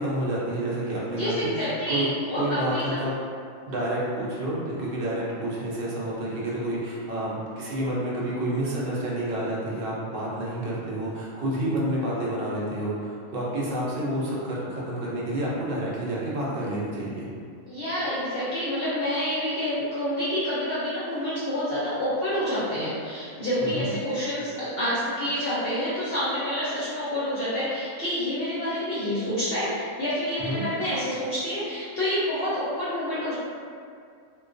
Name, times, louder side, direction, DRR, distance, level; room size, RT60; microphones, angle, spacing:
voice 1, 0.0-2.1 2.3-3.1 3.7-17.3 23.6-23.9 30.5-30.7, right 1 dB, 60° right, -6 dB, 0.6 m, -29 dB
voice 2, 1.2-3.0 17.7-33.3, equal, 60° left, -11 dB, 0.6 m, -28 dB
2.3 x 2.2 x 2.4 m, 2.3 s
omnidirectional pair, 1.4 m